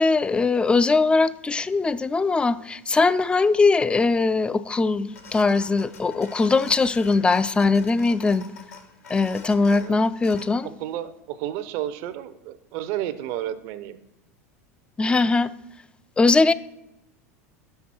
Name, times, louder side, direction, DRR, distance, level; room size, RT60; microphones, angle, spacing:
voice 1, 0.0-8.5 9.1-10.7 15.0-15.5 16.2-16.5, left 3 dB, 10° left, 0.3 m, -21 dB
sound 1, 5.1-10.5, left 5 dB, 85° left, 1.0 m, -44 dB
voice 2, 10.6-14.0, right 12 dB, 55° right, 0.6 m, -32 dB
5.8 x 5.7 x 6.0 m
hypercardioid pair, 90°, 8 cm